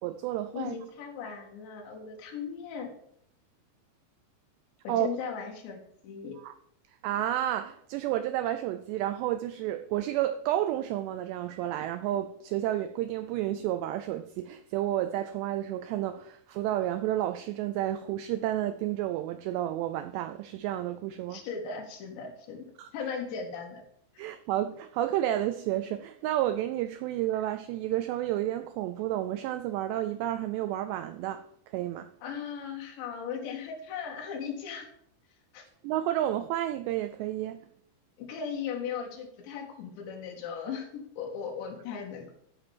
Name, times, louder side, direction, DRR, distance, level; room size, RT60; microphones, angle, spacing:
voice 1, 0.0-0.8 4.9-5.1 6.4-6.5 7.0-21.4 22.8-22.9 24.2-32.1 35.8-37.6, right 13 dB, 90° right, 2.4 m, -31 dB
voice 2, 0.5-2.9 4.8-6.4 21.3-22.6 22.9-23.8 24.2-24.3 32.2-34.9 35.5-35.7 38.2-42.3, left 6 dB, 70° left, 4.2 m, -37 dB
14.0 x 5.0 x 7.2 m
omnidirectional pair, 5.6 m